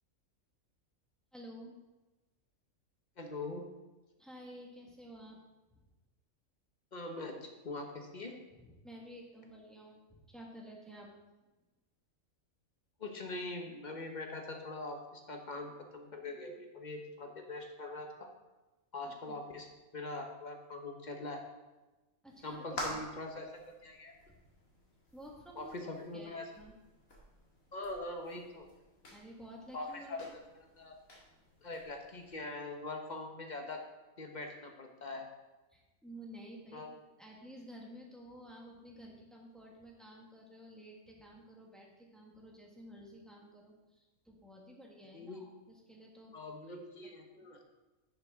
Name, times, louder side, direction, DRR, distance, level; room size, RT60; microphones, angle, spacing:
voice 1, 1.3-1.7 4.2-5.4 5.7-5.8 8.6-11.1 19.0-19.4 22.2-23.1 24.3-24.4 25.1-25.8 26.1-26.7 29.1-30.2 35.7-36.9 37.2-46.4 46.7-46.8, equal, ahead, -2 dB, 1.5 m, -52 dB
voice 2, 3.2-3.6 6.9-8.3 13.0-18.3 18.9-19.7 19.9-21.4 22.4-23.5 23.8-24.1 25.6-26.5 27.7-28.7 29.7-30.3 30.8-31.0 31.6-33.8 34.2-35.3 36.7-36.9 45.1-45.4 46.3-47.6, left 2 dB, 35° left, 3 dB, 1.1 m, -42 dB
sound 1, 22.3-32.4, left 1 dB, 75° left, 2.5 m, -49 dB
10.5 x 6.9 x 3.7 m, 1.1 s
omnidirectional pair, 1.5 m